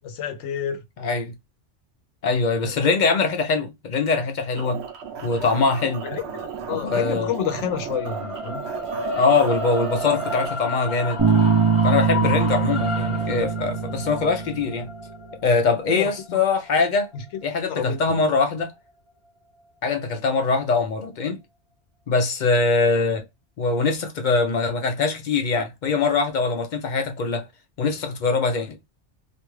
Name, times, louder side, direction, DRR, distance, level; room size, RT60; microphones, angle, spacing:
voice 1, 0.0-0.8 2.6-2.9 6.0-8.6 12.1-12.3 15.9-16.4 17.1-17.2 17.6-18.0, left 8 dB, 80° left, 0.9 m, -30 dB
voice 2, 1.0-1.3 2.2-4.8 5.2-6.1 6.7-7.3 9.1-11.2 11.8-14.9 15.4-17.1 17.4-18.7 19.8-21.4 22.1-23.2 23.6-27.5 27.8-28.8, left 4 dB, 60° left, 0.5 m, -22 dB
sound 1, 4.6-10.5, right 7 dB, 70° right, 0.9 m, -34 dB
sound 2, 7.8-18.0, left 2 dB, 5° right, 0.7 m, -32 dB
Bass guitar, 11.2-14.9, right 6 dB, 35° right, 0.4 m, -22 dB
2.5 x 2.3 x 3.0 m
omnidirectional pair, 1.2 m